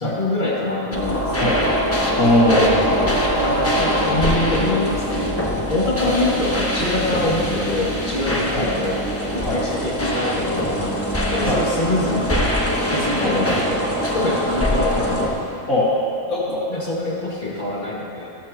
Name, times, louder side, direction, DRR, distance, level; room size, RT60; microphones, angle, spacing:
voice 1, 0.0-1.2 1.5-1.6 3.3-9.0 9.3-12.3 12.9-13.9 14.1-15.5 16.7-18.3, left 2 dB, 35° left, -6 dB, 2.3 m, -25 dB
sound 1, 0.9-15.3, equal, 10° left, 1.1 m, -23 dB
voice 2, 2.2-3.1 6.0-6.4 8.5-8.7 9.4-9.6 11.5-11.6 13.2-13.3 15.7-15.9 16.3-16.6, left 1 dB, 80° left, -11 dB, 2.8 m, -20 dB
14.5 x 13.5 x 2.9 m, 2.8 s
omnidirectional pair, 1.4 m